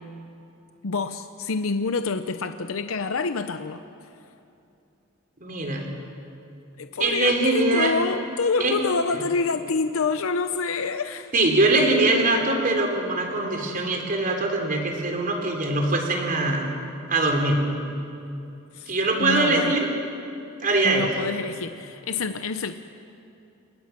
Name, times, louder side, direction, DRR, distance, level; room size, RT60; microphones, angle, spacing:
voice 1, 0.8-3.8 6.8-11.3 18.7-19.8 20.8-22.7, left 4 dB, 75° left, 9 dB, 0.7 m, -27 dB
voice 2, 5.4-5.9 7.0-7.9 8.6-8.7 11.3-16.7 17.1-17.6 18.9-19.9 20.6-21.1, right 2 dB, 40° right, 1 dB, 3.6 m, -22 dB
28.5 x 21.0 x 6.0 m, 2.7 s
head